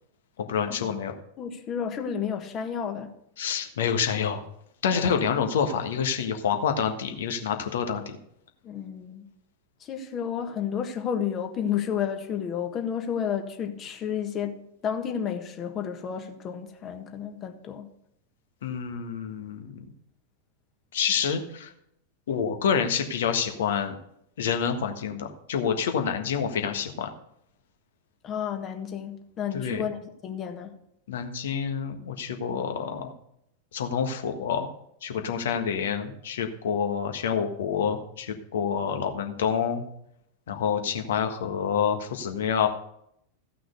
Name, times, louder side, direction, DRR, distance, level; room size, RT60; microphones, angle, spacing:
voice 1, 0.4-1.1 3.4-4.4 4.8-8.1 18.6-19.7 20.9-21.7 22.3-23.9 24.4-27.1 29.5-29.8 31.1-33.1 33.7-34.7 35.0-39.8 40.5-42.7, left 7 dB, 60° left, 1.5 m, -27 dB
voice 2, 1.4-3.1 4.9-5.1 8.6-9.3 9.8-17.9 28.2-30.7, left 8 dB, 30° left, 1.5 m, -31 dB
15.0 x 6.0 x 6.7 m
figure-of-eight pair, 90°, 0 cm